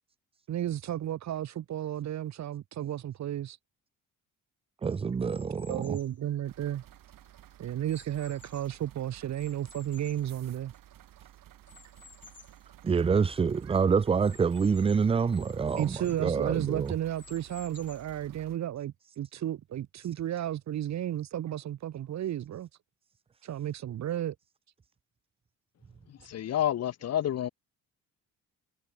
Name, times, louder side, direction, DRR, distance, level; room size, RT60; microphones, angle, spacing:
voice 1, 0.5-3.6 5.7-6.8 7.6-10.7 15.8-22.7 23.4-24.3, right 11 dB, 55° right, 1.1 m, -33 dB
voice 2, 4.8-6.0 12.8-16.9, right 5 dB, 20° right, 0.4 m, -27 dB
sound 1, 5.2-6.2 6.8-8.8 9.3-11.0 11.6-12.6 13.1-13.2 13.4-13.5 14.2-16.3 16.8-18.2, left 6 dB, 35° left, 3.1 m, -56 dB
sound 2, 6.4-18.6, right 13 dB, 75° right, 4.5 m, -54 dB
voice 3, 26.2-27.5, left 11 dB, 50° left, 0.8 m, -29 dB
cardioid pair, 135°, 33 cm